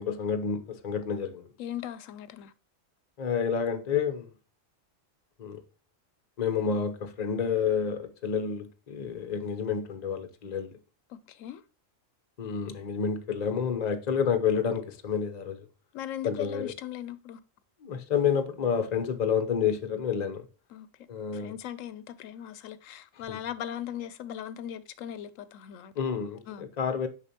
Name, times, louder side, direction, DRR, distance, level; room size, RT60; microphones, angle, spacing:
voice 1, 0.0-1.4 3.2-4.3 5.4-5.6 6.4-10.7 12.4-15.6 16.2-16.7 17.8-20.5 21.1-21.5 23.3-23.4 26.0-27.1, left 7 dB, 40° left, 0.8 m, -29 dB
voice 2, 1.6-2.5 11.1-11.6 15.9-17.4 20.7-20.9 21.3-25.9 26.5-26.7, left 10 dB, 85° left, 1.0 m, -38 dB
6.6 x 5.2 x 2.8 m
omnidirectional pair, 1.3 m